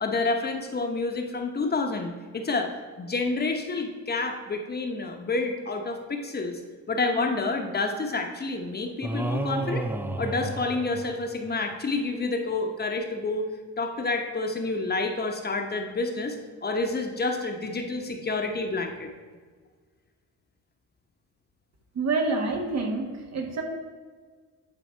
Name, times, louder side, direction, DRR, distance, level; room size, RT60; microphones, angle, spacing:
voice 1, 0.0-6.6 6.9-9.9 10.2-13.5 13.8-16.4 16.6-19.1, left 3 dB, 35° left, 4 dB, 0.9 m, -29 dB
sound 1, 9.0-11.5, right 2 dB, 5° right, 0.4 m, -31 dB
voice 2, 21.9-23.6, right 3 dB, 60° right, 2 dB, 1.5 m, -27 dB
10.5 x 4.0 x 4.5 m, 1.5 s
cardioid pair, 90°, 30 cm